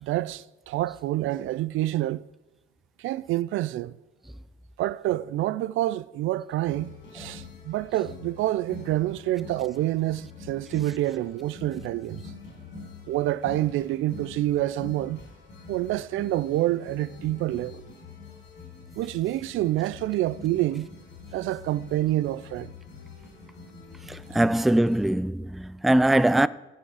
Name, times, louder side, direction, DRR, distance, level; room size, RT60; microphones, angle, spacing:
voice 1, 0.0-2.2 3.0-4.0 4.8-12.2 13.1-15.2 15.7-17.8 19.0-20.9 21.3-22.7, right 15 dB, 80° right, 0.4 m, -27 dB
sound 1, 6.6-25.1, left 4 dB, 70° left, 4.8 m, -45 dB
voice 2, 24.1-26.5, right 1 dB, ahead, 0.3 m, -22 dB
15.0 x 7.2 x 4.8 m
cardioid pair, 90°, 20 cm